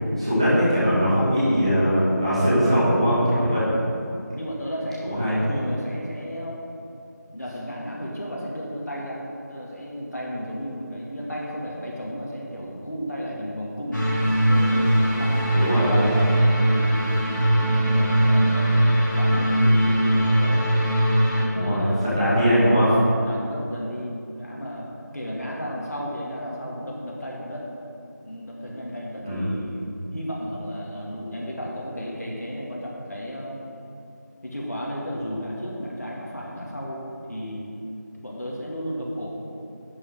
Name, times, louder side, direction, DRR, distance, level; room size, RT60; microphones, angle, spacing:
voice 1, 0.2-3.6 5.1-5.3 15.5-16.1 21.5-22.9 29.2-29.5, equal, 15° right, -12 dB, 1.9 m, -21 dB
voice 2, 3.0-3.6 4.3-6.6 7.3-14.1 14.5-17.2 17.5-20.7 21.4-22.3 22.8-27.7 28.2-33.6 34.4-37.6 38.2-39.3, equal, 60° left, -4 dB, 2.1 m, -33 dB
sound 1, 13.9-21.4, right 1 dB, 85° left, 2.4 m, -20 dB
11.0 x 8.0 x 3.7 m, 2.6 s
figure-of-eight pair, 175°, 10 cm